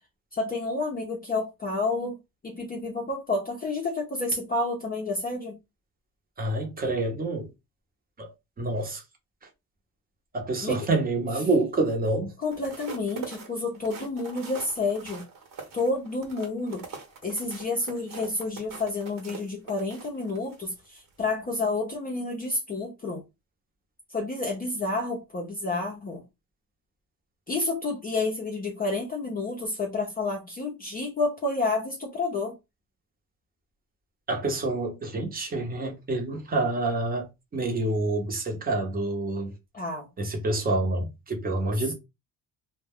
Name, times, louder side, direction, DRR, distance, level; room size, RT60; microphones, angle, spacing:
voice 1, 0.3-2.2 2.4-5.6 10.6-10.8 12.4-15.3 15.7-16.8 17.2-23.2 24.1-26.2 27.5-32.5 39.7-40.1, left 3 dB, 25° left, 0.6 m, -30 dB
voice 2, 6.4-7.5 8.2-9.0 10.3-12.3 34.3-39.5 40.2-41.9, right 2 dB, 25° right, 0.8 m, -27 dB
sound 1, 12.4-20.6 21.1-21.3, right 5 dB, 60° right, 1.1 m, -42 dB
2.2 x 2.2 x 3.4 m
cardioid pair, 145°, 37 cm